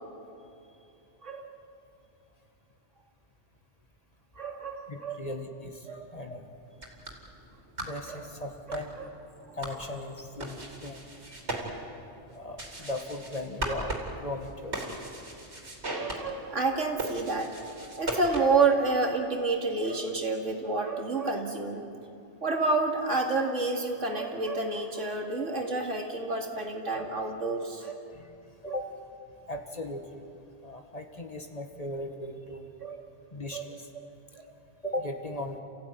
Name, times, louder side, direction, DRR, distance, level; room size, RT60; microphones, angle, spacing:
voice 1, 4.4-5.2 5.9-6.1 8.1-8.2 8.7-8.8 15.9-17.5 18.0-21.8 22.4-28.0 28.6-28.8 32.8-33.0 33.5-33.6 34.3-34.5, right 3 dB, 85° right, 2 dB, 2.7 m, -29 dB
voice 2, 4.9-5.9 6.1-6.5 7.8-8.9 9.6-11.4 12.3-14.8 28.1-28.3 28.6-28.9 29.5-30.0 30.6-32.6 33.3-33.9 34.8-35.6, left 1 dB, 30° left, 5 dB, 1.7 m, -37 dB
sound 1, 6.6-18.7, right 1 dB, 65° right, 3.7 m, -39 dB
29.5 x 15.5 x 9.7 m, 2.7 s
omnidirectional pair, 1.2 m